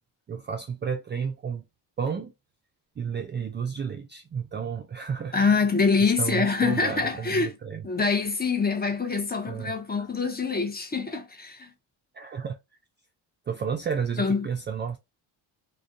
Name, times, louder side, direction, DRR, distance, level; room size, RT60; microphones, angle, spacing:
voice 1, 0.3-1.7 2.0-2.3 3.0-5.4 6.0-7.9 9.4-10.1 12.1-12.6 13.5-15.0, right 6 dB, 25° right, 0.3 m, -32 dB
voice 2, 5.3-7.5 7.8-11.7 14.2-14.5, left 4 dB, 20° left, 0.7 m, -25 dB
2.3 x 2.2 x 2.6 m
supercardioid pair, 70°, 48 cm